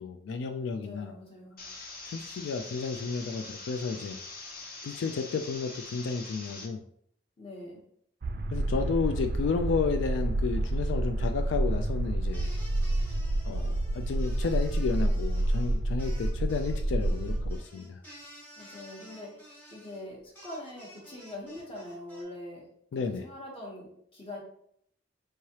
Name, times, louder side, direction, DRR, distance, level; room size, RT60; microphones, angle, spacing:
voice 1, 0.0-1.2 2.1-4.2 4.8-6.8 8.5-12.5 13.5-18.0 22.9-23.3, left 5 dB, 75° left, 7 dB, 0.3 m, -32 dB
voice 2, 0.7-1.6 7.4-7.8 18.6-19.4 19.7-22.6 22.9-24.4, left 1 dB, 30° left, -1 dB, 1.1 m, -43 dB
sound 1, 1.6-6.7, left 3 dB, 50° left, 0.8 m, -43 dB
sound 2, 8.2-17.6, right 1 dB, 50° right, 0.4 m, -29 dB
sound 3, 12.3-22.2, equal, 10° left, 1.3 m, -52 dB
4.6 x 3.1 x 2.9 m, 0.68 s
head